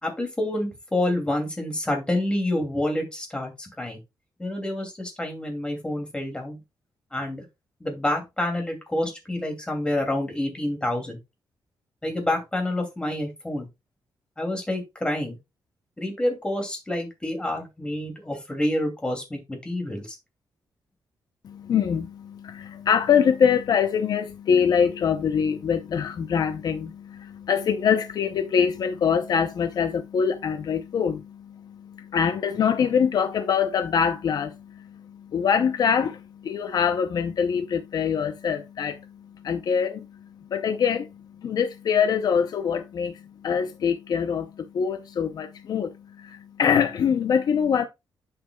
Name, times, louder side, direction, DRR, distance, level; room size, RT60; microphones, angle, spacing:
voice 1, 0.0-4.0 4.4-6.6 7.1-7.4 7.8-11.2 12.0-13.7 14.4-15.4 16.0-20.2, left 1 dB, 15° left, 2.7 m, -28 dB
voice 2, 21.4-39.2 39.4-47.9, left 7 dB, 60° left, 0.7 m, -24 dB
10.5 x 5.9 x 2.3 m
wide cardioid pair, 135°, 8 cm